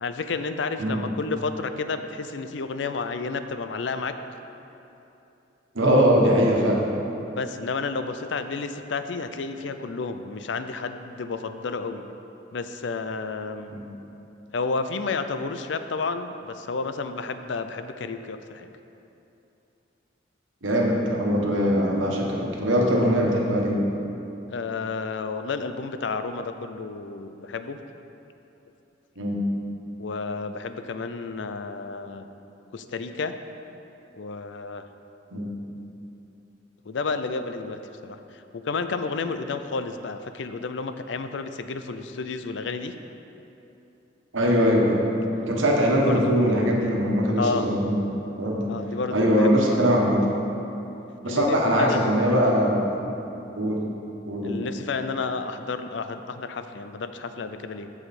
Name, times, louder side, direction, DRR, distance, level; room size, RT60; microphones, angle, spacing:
voice 1, 0.0-4.1 7.3-12.0 12.5-13.7 14.5-18.7 24.5-27.8 30.0-32.3 32.7-33.3 34.2-34.9 36.9-42.9 46.0-46.7 47.4-47.7 48.7-49.8 51.3-52.6 54.4-57.9, left 4 dB, 65° left, 9 dB, 0.5 m, -31 dB
voice 2, 5.7-6.8 13.7-13.8 20.6-23.9 29.2-29.4 35.3-35.5 44.3-45.0 45.5-48.0 48.4-48.7 49.1-50.2 51.2-52.9 53.6-53.8 54.3-54.6, equal, 90° right, -1 dB, 1.4 m, -21 dB
14.0 x 4.9 x 4.2 m, 2.9 s
head